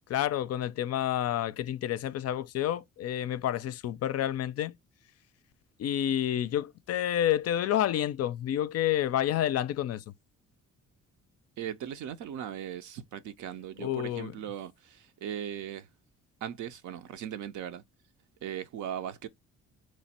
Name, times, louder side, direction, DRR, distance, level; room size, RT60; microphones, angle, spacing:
voice 1, 0.1-4.8 5.8-10.0 13.8-14.3, left 11 dB, 55° left, 0.4 m, -29 dB
voice 2, 11.6-15.9 16.4-17.8 18.4-19.3, right 10 dB, 75° right, 0.6 m, -38 dB
3.1 x 2.2 x 4.2 m
cardioid pair, 90°, 30 cm